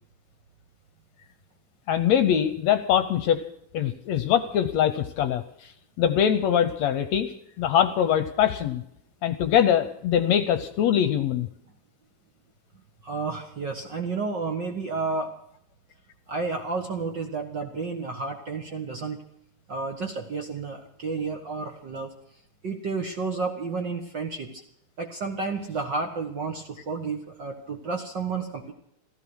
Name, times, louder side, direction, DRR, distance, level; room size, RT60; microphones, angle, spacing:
voice 1, 1.9-3.4 3.7-5.7 6.0-8.8 9.2-11.5, left 9 dB, 70° left, 11 dB, 1.9 m, -23 dB
voice 2, 13.0-15.3 16.3-19.2 19.7-22.1 22.6-24.6 25.0-28.7, right 4 dB, 45° right, 4 dB, 1.6 m, -31 dB
15.0 x 15.0 x 6.2 m, 0.72 s
omnidirectional pair, 3.7 m